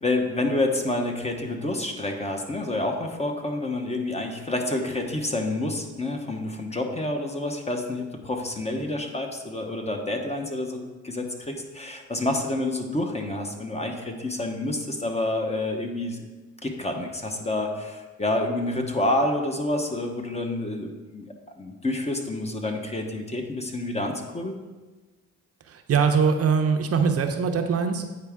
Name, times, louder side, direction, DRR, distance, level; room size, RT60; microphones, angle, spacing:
voice 1, 0.0-16.2 16.6-21.3 21.6-24.6, left 2 dB, 20° left, 3 dB, 0.9 m, -28 dB
voice 2, 25.7-28.1, right 6 dB, 50° right, 5 dB, 0.7 m, -22 dB
8.6 x 4.7 x 3.5 m, 1.2 s
cardioid pair, 90°, 30 cm